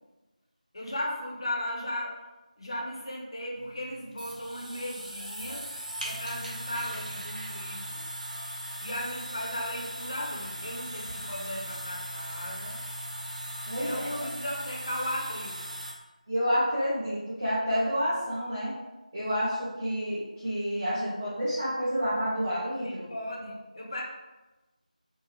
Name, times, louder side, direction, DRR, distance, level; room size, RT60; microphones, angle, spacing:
voice 1, 0.7-2.2 2.6-5.7 6.0-8.0 8.8-12.8 13.8-15.7 22.8-24.0, left 1 dB, 35° left, -2 dB, 0.5 m, -36 dB
sound 1, 3.5-15.9, equal, 70° right, 0.7 m, -39 dB
voice 2, 13.7-14.3 16.3-18.7 19.1-23.1, equal, 20° right, -10 dB, 0.4 m, -29 dB
2.7 x 2.3 x 2.8 m, 1.1 s
figure-of-eight pair, 170°, 4 cm